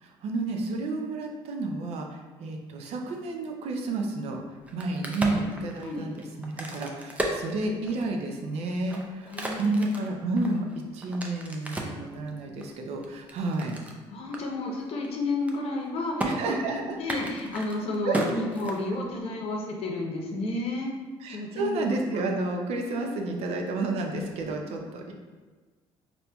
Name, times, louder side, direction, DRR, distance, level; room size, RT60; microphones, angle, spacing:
voice 1, 0.0-4.4 4.7-9.3 9.6-10.7 10.9-13.8 16.2-17.0 18.0-18.2 21.2-25.1, right 2 dB, 70° right, 2 dB, 0.5 m, -30 dB
Crack, 4.6-8.2 8.7-12.0 12.6-14.0 14.3-14.4 14.7-15.1 15.3-15.9 16.2-16.3 17.0-19.2, right 1 dB, 15° right, 0.5 m, -34 dB
voice 2, 9.3-10.0 14.1-20.9 21.3-22.0, left 2 dB, 60° left, 0 dB, 0.7 m, -32 dB
4.2 x 2.7 x 2.2 m, 1.3 s
cardioid pair, 95°, 11 cm